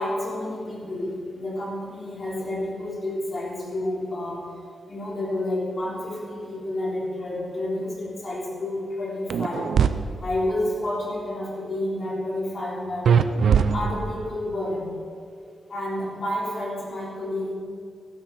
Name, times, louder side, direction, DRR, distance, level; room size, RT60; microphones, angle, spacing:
voice 1, 0.0-4.4 4.9-9.7 10.2-13.1 13.7-15.0 15.7-17.5, left 1 dB, 40° left, -4 dB, 3.7 m, -30 dB
sound 1, 9.3-9.9 13.1-14.2, right 7 dB, 75° right, 0.5 m, -20 dB
15.0 x 11.5 x 4.2 m, 2.2 s
wide cardioid pair, 110°, 0 cm